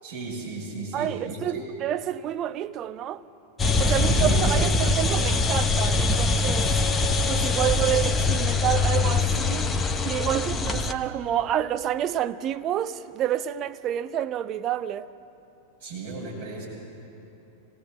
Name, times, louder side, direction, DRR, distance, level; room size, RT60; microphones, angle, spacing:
voice 1, 0.0-1.6 3.8-4.4 15.8-16.7, right 4 dB, 60° right, 6.1 m, -35 dB
voice 2, 0.9-3.2 3.8-6.7 7.3-9.7 10.0-15.1, right 11 dB, 35° right, 0.6 m, -28 dB
sound 1, 3.6-10.9, left 3 dB, 20° left, 0.9 m, -23 dB
26.0 x 17.5 x 7.7 m
figure-of-eight pair, 90°, 0 cm